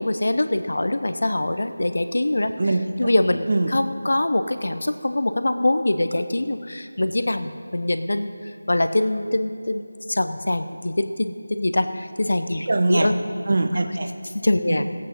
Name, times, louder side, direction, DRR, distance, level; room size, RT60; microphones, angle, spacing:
voice 1, 0.0-2.5 3.0-8.3 8.7-9.8 10.1-13.1 14.4-14.9, left 1 dB, 60° left, 9 dB, 0.8 m, -23 dB
voice 2, 2.6-3.1 3.5-3.7 12.7-13.1 13.5-14.1 14.7-14.8, right 2 dB, 45° right, 6 dB, 0.8 m, -22 dB
16.5 x 8.6 x 5.4 m, 2.2 s
figure-of-eight pair, 165°, 0 cm